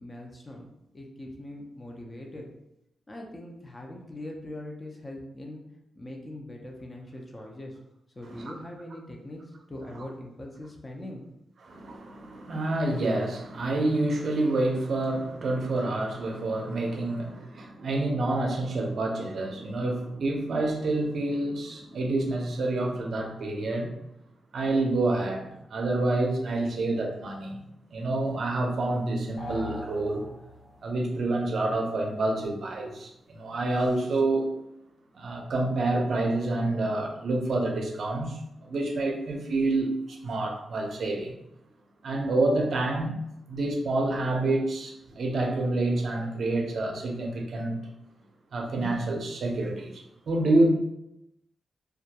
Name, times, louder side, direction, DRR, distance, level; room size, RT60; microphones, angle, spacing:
voice 1, 0.0-2.5 3.1-5.6 6.0-7.8 8.2-11.2, left 1 dB, 25° left, 0 dB, 0.4 m, -41 dB
voice 2, 11.7-23.9 24.5-27.6 27.9-30.3 30.8-34.5 35.1-41.4 42.0-43.2 43.5-47.8 48.5-50.7, right 2 dB, 60° right, 1 dB, 0.5 m, -28 dB
sound 1, 29.4-30.9, left 1 dB, 75° left, 1.2 m, -40 dB
2.2 x 2.2 x 2.7 m, 0.85 s
cardioid pair, 110°, 0 cm